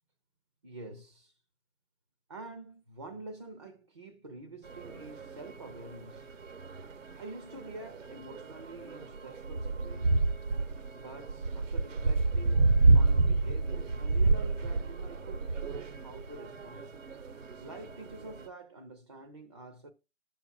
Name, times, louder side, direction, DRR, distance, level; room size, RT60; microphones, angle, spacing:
voice 1, 0.6-1.3 2.3-6.3 7.2-10.4 10.9-16.9 17.6-19.9, right 2 dB, 25° right, 0.6 m, -47 dB
sound 1, 4.6-18.5, right 3 dB, 85° right, 1.0 m, -29 dB
10.5 x 7.2 x 2.5 m
hypercardioid pair, 165°, 38 cm